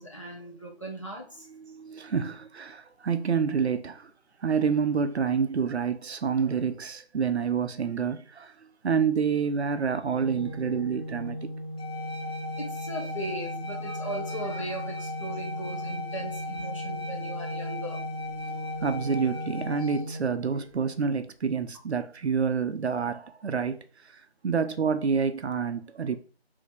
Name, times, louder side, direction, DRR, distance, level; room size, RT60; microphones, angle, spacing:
voice 1, 0.0-1.5 12.6-18.0, right 1 dB, 30° left, 0.8 m, -38 dB
voice 2, 1.6-4.1 4.4-11.5 18.4-26.2, right 6 dB, 85° right, 0.5 m, -28 dB
Organ, 10.1-21.0, equal, 10° right, 1.6 m, -37 dB
sound 1, 11.8-20.0, left 3 dB, 70° left, 1.0 m, -38 dB
4.0 x 2.7 x 3.4 m
figure-of-eight pair, 170°, 32 cm